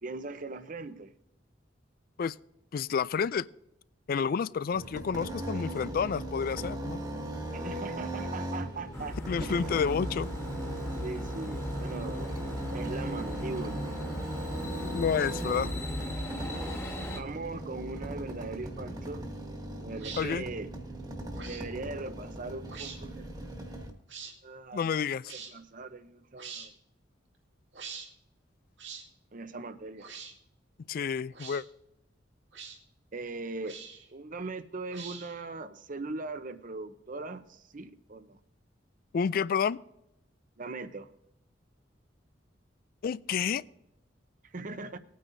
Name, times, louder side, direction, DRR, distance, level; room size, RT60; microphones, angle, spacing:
voice 1, 0.0-1.1 7.5-9.6 11.0-12.4 12.7-13.9 17.1-19.3 19.8-20.7 21.5-23.4 24.4-24.9 25.5-26.7 29.3-30.1 33.1-33.8 34.1-38.4 40.6-41.1 44.5-45.0, right 3 dB, 45° right, 0.8 m, -40 dB
voice 2, 2.7-3.5 4.1-7.0 9.3-10.3 14.9-15.7 20.2-20.5 24.7-25.3 30.9-31.6 39.1-39.8 43.0-43.6, left 6 dB, 50° left, 0.3 m, -29 dB
sound 1, 4.7-23.9, right 1 dB, 20° right, 1.5 m, -38 dB
sound 2, 8.9-17.2, left 1 dB, 15° left, 1.7 m, -38 dB
sound 3, 20.0-20.2 21.3-21.6 22.6-23.0 24.1-24.3 25.2-25.5 26.4-26.7 27.7-28.1 28.8-29.0 30.0-30.3 31.3-31.6 32.5-32.8 33.6-34.1 34.9-35.4, right 6 dB, 75° right, 2.0 m, -43 dB
19.5 x 9.3 x 2.7 m
head